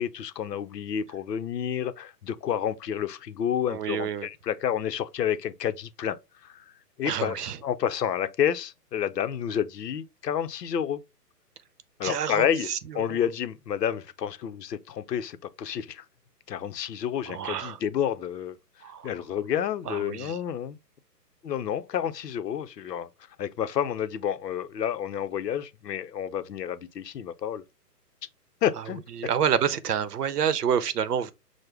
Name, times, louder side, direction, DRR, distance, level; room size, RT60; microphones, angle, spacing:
voice 1, 0.0-6.2 6.4-6.6 7.0-11.0 12.0-12.7 12.9-16.0 16.5-18.6 19.0-20.8 21.4-23.1 23.4-27.6 28.6-29.0, left 9 dB, 75° left, 0.7 m, -29 dB
voice 2, 3.7-4.3 7.0-7.6 12.0-12.8 13.1-13.2 17.3-17.8 18.8-19.1 19.9-20.4 29.2-31.3, right 8 dB, 70° right, 0.7 m, -28 dB
6.3 x 2.1 x 3.3 m
hypercardioid pair, 170°, 49 cm